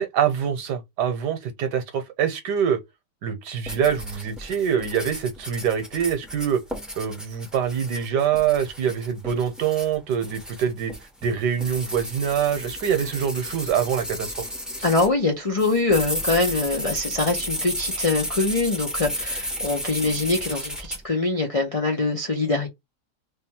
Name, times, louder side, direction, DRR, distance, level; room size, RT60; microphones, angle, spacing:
voice 1, 0.0-2.8 3.2-6.6 7.0-10.9 11.2-14.4, right 8 dB, 75° right, 1.4 m, -25 dB
sound 1, 3.7-15.1 15.6-21.0, equal, ahead, 0.5 m, -33 dB
voice 2, 14.8-22.7, left 3 dB, 65° left, 0.3 m, -23 dB
3.3 x 2.2 x 4.2 m
omnidirectional pair, 1.8 m